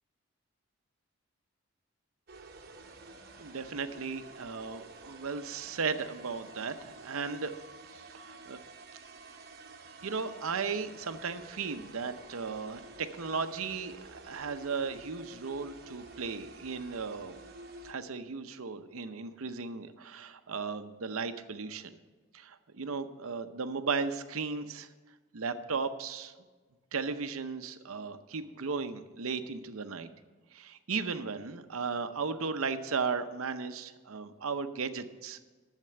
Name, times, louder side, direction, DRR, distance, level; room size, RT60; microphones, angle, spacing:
sound 1, 2.3-17.9, right 2 dB, 45° right, 1.0 m, -50 dB
voice 1, 3.4-7.5 7.9-8.6 10.0-17.4 17.8-22.0 22.3-24.9 25.3-26.3 26.9-30.1 30.5-35.4, right 5 dB, 85° right, 10 dB, 0.7 m, -36 dB
10.5 x 7.5 x 6.8 m, 1.3 s
head